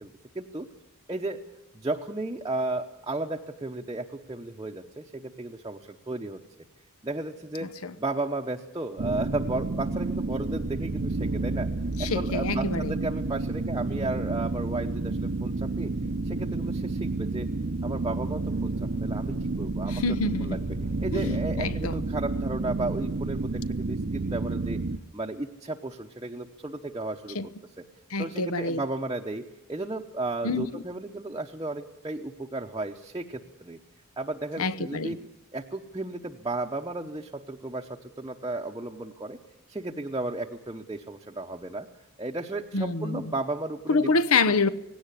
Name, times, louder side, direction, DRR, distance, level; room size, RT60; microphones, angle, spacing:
voice 1, 0.0-0.7 1.1-1.4 1.7-6.4 7.0-7.7 8.0-11.7 12.0-15.9 16.2-17.5 17.8-20.0 20.4-20.6 21.0-24.8 25.1-27.5 28.2-33.8 34.2-35.2 35.5-39.4 39.7-41.9 42.2-44.1, right 2 dB, 20° right, 0.9 m, -34 dB
voice 2, 7.6-7.9 12.0-13.0 19.9-20.8 21.1-22.0 27.3-27.5 28.1-28.8 30.4-30.8 34.6-35.2 42.7-43.3 43.9-44.7, left 3 dB, 70° left, 0.9 m, -27 dB
sound 1, 9.0-25.0, right 3 dB, 50° right, 0.7 m, -30 dB
19.0 x 17.0 x 9.9 m
head